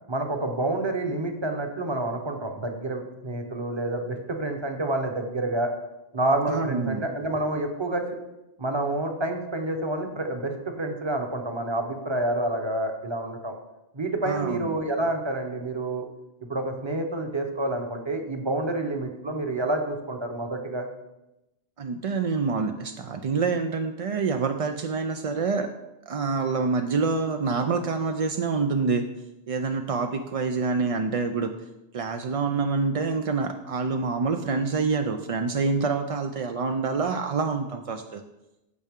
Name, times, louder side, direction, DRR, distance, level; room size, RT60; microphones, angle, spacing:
voice 1, 0.1-5.7 6.1-8.0 8.6-13.5 13.9-16.1 16.5-20.9, right 2 dB, 25° right, 4 dB, 1.0 m, -28 dB
voice 2, 6.5-7.0 14.2-14.7 21.8-25.7 26.1-29.1 29.5-31.5 31.9-38.2, right 4 dB, 50° right, 6 dB, 0.4 m, -26 dB
14.5 x 5.5 x 3.6 m, 0.96 s
omnidirectional pair, 1.1 m